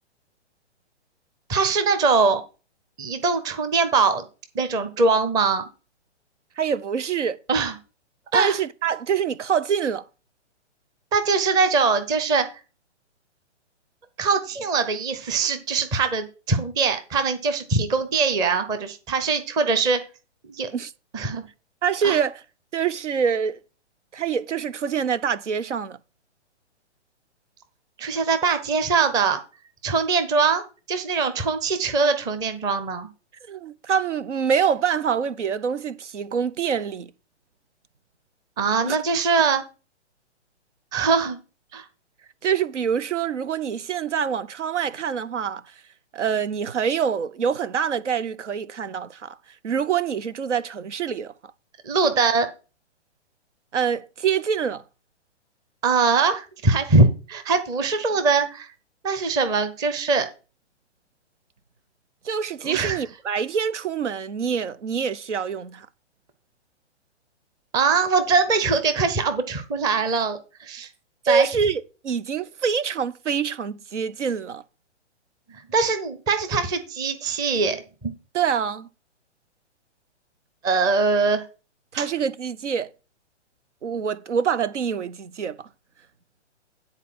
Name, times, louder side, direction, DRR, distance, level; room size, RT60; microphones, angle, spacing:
voice 1, 1.5-2.4 3.0-4.2 4.5-5.6 7.5-7.7 8.3-8.6 11.1-12.5 14.2-20.0 20.5-20.7 21.1-21.4 22.0-22.2 28.0-29.4 29.8-30.6 30.9-33.1 38.6-39.6 40.9-41.4 41.7-41.8 51.8-52.5 55.8-58.7 59.0-60.3 62.6-63.0 67.7-70.9 71.3-71.5 75.7-78.1 80.6-81.4 82.0-82.1, right 4 dB, 10° right, 0.6 m, -22 dB
voice 2, 6.6-7.4 8.3-10.0 20.7-20.9 21.8-22.4 22.7-23.6 24.1-26.0 33.5-37.1 38.8-39.0 42.4-45.6 46.1-49.4 49.6-51.3 53.7-54.8 62.2-65.9 71.2-74.6 78.3-78.9 81.9-82.9 83.8-85.7, right 7 dB, 85° right, 0.8 m, -25 dB
9.8 x 4.2 x 6.1 m
hypercardioid pair, 140°, 35 cm